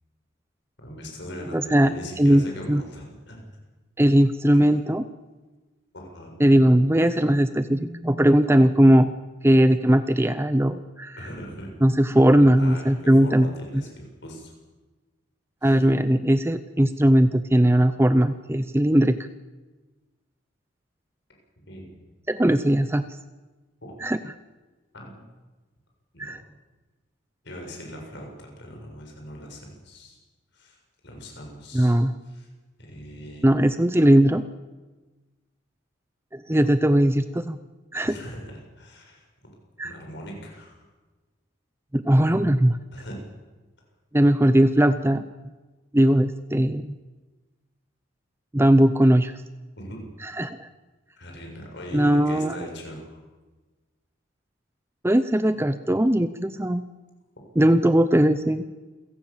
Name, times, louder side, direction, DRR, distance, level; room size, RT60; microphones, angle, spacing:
voice 1, 0.8-3.4 4.5-4.6 5.9-6.3 11.2-11.7 12.6-14.5 15.6-15.7 21.7-21.9 23.8-23.9 24.9-25.2 26.1-26.3 27.4-30.2 30.5-31.9 32.2-32.5 32.8-33.5 38.0-38.4 38.8-39.3 39.8-40.8 42.9-43.2 49.8-50.0 51.2-53.2, equal, 60° left, 1 dB, 7.3 m, -40 dB
voice 2, 1.5-1.9 2.2-2.8 4.0-5.0 6.4-9.1 9.4-11.2 11.8-13.5 15.6-19.2 22.3-23.0 24.0-24.2 26.2-26.4 31.7-32.1 33.4-34.4 36.3-37.6 37.9-38.2 39.8-39.9 41.9-42.8 44.1-45.2 45.9-46.9 48.5-49.3 50.2-50.7 51.9-52.5 55.0-56.9 57.6-58.6, right 1 dB, 10° right, 11 dB, 0.7 m, -19 dB
28.5 x 17.0 x 7.4 m, 1.2 s
head